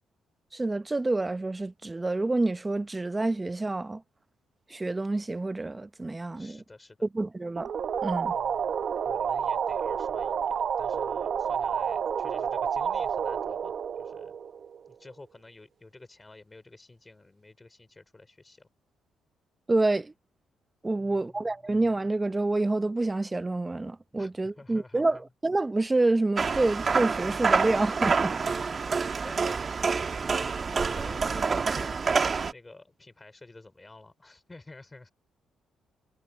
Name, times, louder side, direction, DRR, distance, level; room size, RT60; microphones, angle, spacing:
voice 1, 0.5-4.0 4.7-6.6 7.1-7.7 8.0-8.3 19.7-20.1 20.8-28.3, right 2 dB, 20° right, 0.8 m, -28 dB
voice 2, 6.3-7.0 8.3-14.3 14.9-18.7 21.0-21.6 24.2-25.2 28.0-28.9 29.2-32.0 32.5-35.1, left 2 dB, 20° left, 4.3 m, -50 dB
sound 1, 7.6-14.9, right 7 dB, 55° right, 1.0 m, -30 dB
sound 2, 26.4-32.5, right 5 dB, 40° right, 1.7 m, -27 dB
cardioid pair, 90°, 0 cm